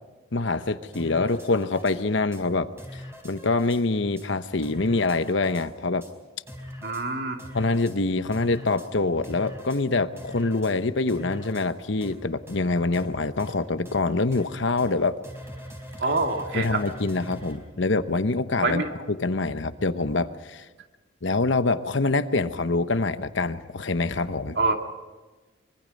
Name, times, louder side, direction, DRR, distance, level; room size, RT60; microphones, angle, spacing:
voice 1, 0.3-2.7 3.2-6.0 7.5-15.2 16.5-18.8 19.1-20.6 21.2-24.6, left 3 dB, 70° left, 11 dB, 1.0 m, -25 dB
sound 1, 0.9-2.0 2.3-2.4 2.8-3.8 4.2-4.3 4.6-5.7 6.0-6.1 6.5-7.0 7.4-8.0 8.3-8.9 9.2-9.8 10.2-10.7 11.1-11.7 12.0-12.1 12.5-12.6 12.9-13.1 13.4-13.5 13.9-14.0 14.3-14.4 14.8-14.9 15.2-17.6, equal, 15° right, 4.3 m, -41 dB
voice 2, 6.8-7.4 16.0-16.8 18.6-18.9 24.6-24.7, right 3 dB, 60° right, 3 dB, 2.3 m, -25 dB
24.5 x 23.5 x 5.4 m, 1.2 s
head